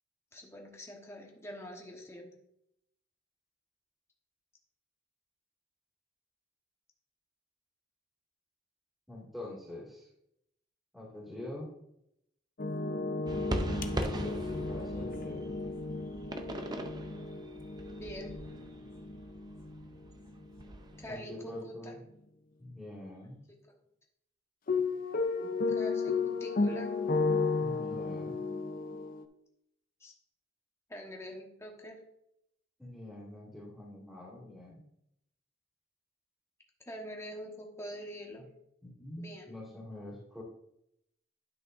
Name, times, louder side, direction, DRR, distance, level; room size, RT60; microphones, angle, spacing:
voice 1, 0.3-2.3 18.0-18.4 21.0-21.9 25.4-27.0 30.0-30.1 30.9-32.0 36.9-38.5 39.2-39.5, equal, 15° left, 0 dB, 1.2 m, -45 dB
voice 2, 9.1-10.1 10.9-11.7 13.9-15.6 21.1-22.0 22.6-23.4 27.6-28.5 32.8-34.8 38.8-40.4, left 1 dB, ahead, -7 dB, 2.2 m, -45 dB
sound 1, 12.6-20.7 24.7-29.2, left 3 dB, 50° left, 0.6 m, -34 dB
sound 2, 13.3-21.2, right 1 dB, 20° right, 0.6 m, -40 dB
11.0 x 6.0 x 2.6 m, 0.79 s
head